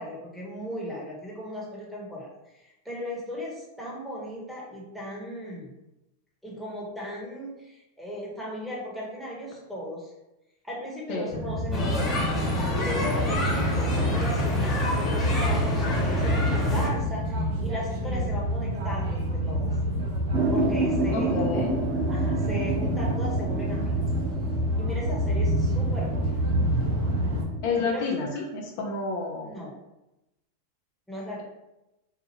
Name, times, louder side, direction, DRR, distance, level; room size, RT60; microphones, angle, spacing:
voice 1, 0.0-2.3 2.5-5.7 6.4-10.1 10.6-12.1 12.8-19.7 20.5-21.6 22.1-24.1 24.8-26.4 27.8-28.4 29.4-29.8 31.1-31.4, equal, ahead, -5 dB, 1.1 m, -37 dB
sound 1, 11.3-27.4, equal, 50° right, 0.9 m, -27 dB
sound 2, 11.7-16.9, left 2 dB, 20° left, 0.8 m, -28 dB
sound 3, 20.3-27.8, right 3 dB, 30° right, 0.4 m, -31 dB
voice 2, 21.1-21.7 27.6-29.5, left 4 dB, 55° left, 1 dB, 0.5 m, -29 dB
2.8 x 2.3 x 3.0 m, 0.96 s
hypercardioid pair, 110°, 0 cm